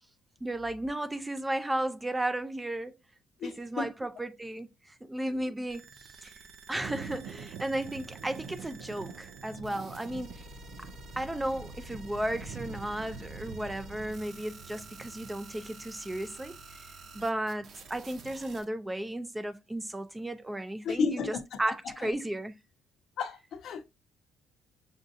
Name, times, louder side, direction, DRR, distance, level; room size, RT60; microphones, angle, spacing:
voice 1, 0.4-2.9 3.4-5.8 6.2-6.3 6.7-10.4 10.8-10.9 11.2-16.9 17.1-22.6, right 1 dB, 10° right, 0.4 m, -34 dB
voice 2, 3.4-3.9 20.8-21.4 22.0-22.1 23.2-23.9, left 5 dB, 60° left, 0.6 m, -32 dB
sound 1, 5.7-18.6, right 2 dB, 55° right, 0.8 m, -50 dB
Thunder, 6.8-18.3, right 6 dB, 90° right, 0.5 m, -47 dB
6.1 x 2.6 x 2.6 m
cardioid pair, 110°, 0 cm